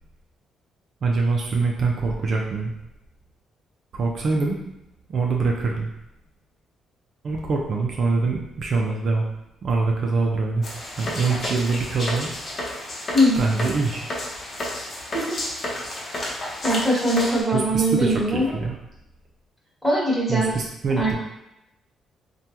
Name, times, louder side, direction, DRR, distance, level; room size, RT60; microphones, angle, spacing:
voice 1, 1.0-2.7 3.9-4.7 5.1-5.9 7.2-9.3 9.6-10.7 11.0-12.3 13.4-14.0 17.5-18.8 20.3-21.2, right 4 dB, 55° right, -1 dB, 0.4 m, -24 dB
sound 1, 10.6-17.4, left 1 dB, 40° left, 0.8 m, -31 dB
voice 2, 16.6-18.5 19.8-20.5 20.9-21.2, equal, 5° left, -6 dB, 1.2 m, -21 dB
3.3 x 2.2 x 2.8 m, 0.88 s
cardioid pair, 90°, 0 cm